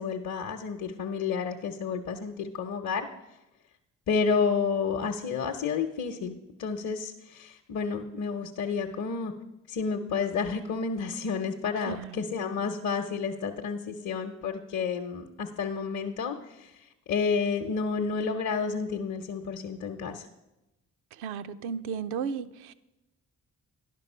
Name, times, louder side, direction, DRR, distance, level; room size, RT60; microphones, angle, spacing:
voice 1, 0.0-3.1 4.1-9.3 9.7-20.3, left 5 dB, 50° left, 0.8 m, -30 dB
voice 2, 11.9-12.2 21.2-22.7, right 6 dB, 80° right, 0.5 m, -34 dB
11.0 x 5.4 x 5.5 m
hypercardioid pair, 45°, 39 cm